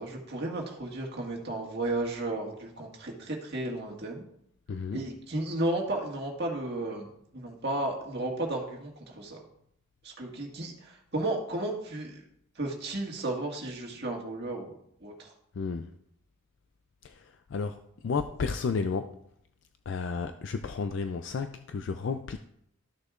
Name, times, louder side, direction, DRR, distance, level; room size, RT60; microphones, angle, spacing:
voice 1, 0.0-4.2 4.9-7.1 7.3-9.4 10.0-12.2 12.5-15.3, right 2 dB, 50° right, 1.7 m, -33 dB
voice 2, 4.7-5.1 15.5-15.9 17.0-19.2 19.9-22.4, left 5 dB, 55° left, 0.3 m, -32 dB
13.5 x 6.5 x 2.4 m
head